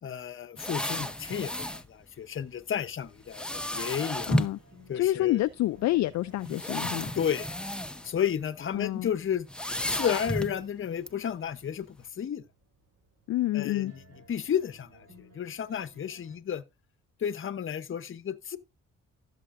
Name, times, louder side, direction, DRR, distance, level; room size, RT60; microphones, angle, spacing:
voice 1, 0.0-4.3 4.9-5.4 7.1-7.5 8.0-9.5 9.9-12.4 13.5-14.0 14.3-16.6 17.2-18.6, left 8 dB, 45° left, 0.9 m, -32 dB
sound 1, 0.6-1.9 3.3-4.6 5.5-5.6 6.4-8.1 8.4-8.7 9.5-10.6 11.1-11.2, equal, 5° left, 0.7 m, -32 dB
voice 2, 4.3-4.6 4.9-7.1 8.7-9.1 13.3-13.9, left 15 dB, 65° left, 0.4 m, -28 dB
sound 2, 4.5-16.3, equal, 60° right, 5.1 m, -59 dB
15.5 x 6.7 x 2.5 m
cardioid pair, 90°, 30 cm